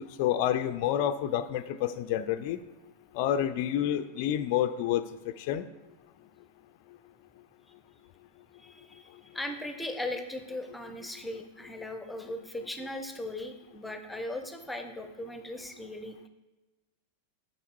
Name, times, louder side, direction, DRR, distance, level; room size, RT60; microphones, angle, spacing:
voice 1, 0.0-2.6 3.1-5.7, left 11 dB, 45° left, 10 dB, 0.4 m, -29 dB
voice 2, 8.6-16.3, left 1 dB, 5° left, 7 dB, 0.8 m, -38 dB
7.0 x 7.0 x 4.6 m, 1.2 s
figure-of-eight pair, 90°, 0 cm